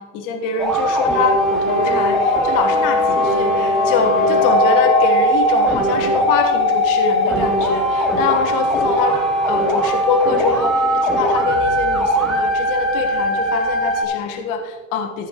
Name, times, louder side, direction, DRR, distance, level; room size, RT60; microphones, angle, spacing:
voice 1, 0.0-9.2 9.4-15.3, left 4 dB, 50° left, 5 dB, 1.4 m, -24 dB
sound 1, 0.6-14.0, equal, ahead, 2.8 m, -19 dB
sound 2, 1.7-10.1, left 10 dB, 80° left, 1.3 m, -26 dB
14.5 x 10.0 x 3.0 m, 1.4 s
supercardioid pair, 120°, 39 cm